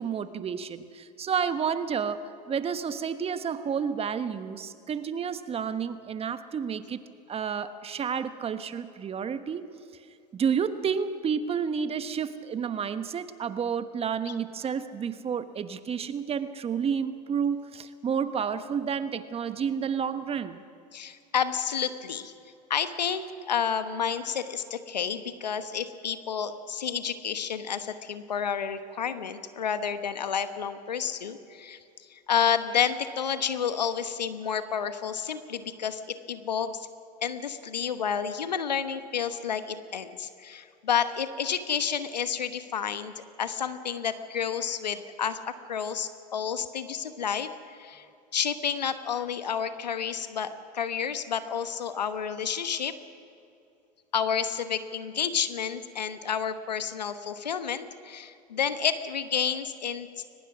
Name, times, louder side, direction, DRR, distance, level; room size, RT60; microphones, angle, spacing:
voice 1, 0.0-7.0 7.3-9.7 10.3-20.6, right 7 dB, 30° right, 11 dB, 1.2 m, -30 dB
voice 2, 20.9-22.3 22.7-31.8 32.1-36.9 37.2-48.0 48.3-52.9 54.1-60.1, left 7 dB, 90° left, 10 dB, 1.2 m, -30 dB
22.5 x 20.5 x 6.1 m, 2.5 s
hypercardioid pair, 90°, 21 cm